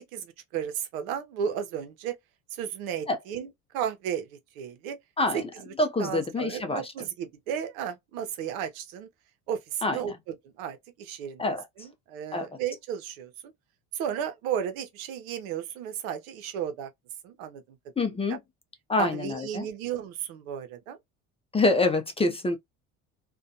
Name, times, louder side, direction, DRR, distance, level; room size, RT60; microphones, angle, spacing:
voice 1, 0.1-2.2 2.5-4.3 4.6-5.0 5.3-5.4 6.0-9.1 9.5-11.4 11.8-13.3 13.9-16.9 17.2-17.8 18.3-18.4 19.0-21.0, right 9 dB, 80° right, 0.8 m, -34 dB
voice 2, 5.2-5.5 5.8-6.9 9.8-10.0 11.4-11.7 12.3-12.5 18.0-18.4 18.9-19.7 21.5-22.6, left 2 dB, 15° left, 0.5 m, -26 dB
2.5 x 2.2 x 2.6 m
supercardioid pair, 95°, 41 cm